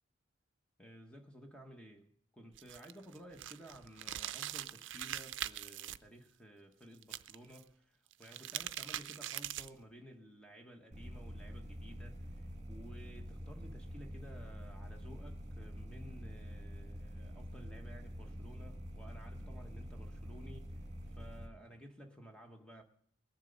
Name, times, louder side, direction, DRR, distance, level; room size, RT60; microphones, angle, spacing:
voice 1, 0.8-22.8, equal, 5° left, 1.2 m, -55 dB
sound 1, 2.5-6.0 7.0-7.6 8.1-9.8, right 12 dB, 65° right, 0.4 m, -42 dB
sound 2, 10.9-21.5, equal, 35° right, 2.2 m, -46 dB
21.0 x 7.4 x 5.2 m
head